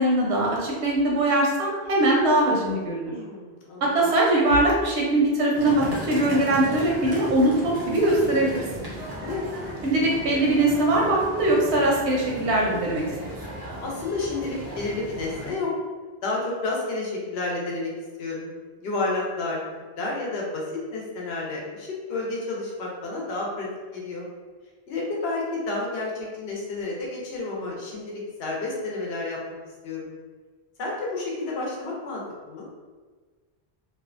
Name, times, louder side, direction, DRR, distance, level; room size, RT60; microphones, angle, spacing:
voice 1, 0.0-3.1 3.8-8.6 9.8-13.3, right 1 dB, 90° right, -3 dB, 0.9 m, -22 dB
voice 2, 3.0-3.9 9.2-9.4 13.8-15.7 16.2-17.9 18.2-18.5 18.8-19.6 20.0-24.3 24.9-29.4 29.8-30.1 30.8-32.2 32.5-32.7, left 3 dB, 75° left, -3 dB, 0.9 m, -30 dB
sound 1, 5.5-15.5, right 1 dB, 30° right, 0.4 m, -36 dB
2.5 x 2.1 x 2.4 m, 1.4 s
omnidirectional pair, 1.1 m